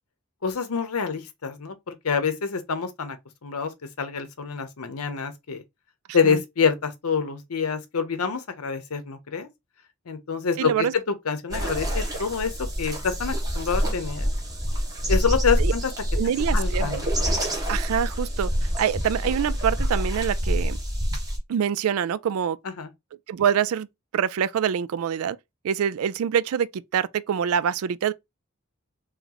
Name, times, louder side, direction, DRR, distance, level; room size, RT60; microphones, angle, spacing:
voice 1, 0.4-3.2 3.4-3.7 4.0-5.6 6.1-9.5 10.1-12.5 12.8-14.3 15.1-15.9 16.5-17.1 22.8-22.9, left 6 dB, 90° left, 0.8 m, -26 dB
voice 2, 10.6-10.9 15.6-15.7 16.2-16.9 17.7-18.5 18.8-20.8 21.5-22.6 23.3-23.9 24.1-25.4 25.6-28.1, right 8 dB, 70° right, 0.3 m, -25 dB
sound 1, 11.5-21.4, equal, 15° right, 1.5 m, -26 dB
3.2 x 3.0 x 3.8 m
head